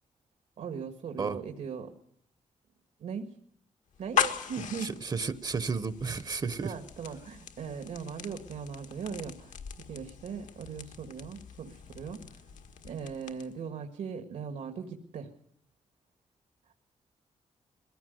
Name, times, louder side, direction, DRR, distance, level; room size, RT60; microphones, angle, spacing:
voice 1, 0.6-1.9 3.0-3.4 4.0-5.0 6.6-12.4 12.8-15.3, right 6 dB, 80° right, 6 dB, 1.8 m, -39 dB
sound 1, 3.9-13.7, left 9 dB, 80° left, 1.7 m, -38 dB
voice 2, 4.8-6.7, right 5 dB, 35° right, 14 dB, 0.8 m, -32 dB
22.0 x 16.0 x 9.3 m, 0.65 s
wide cardioid pair, 175°, 13 cm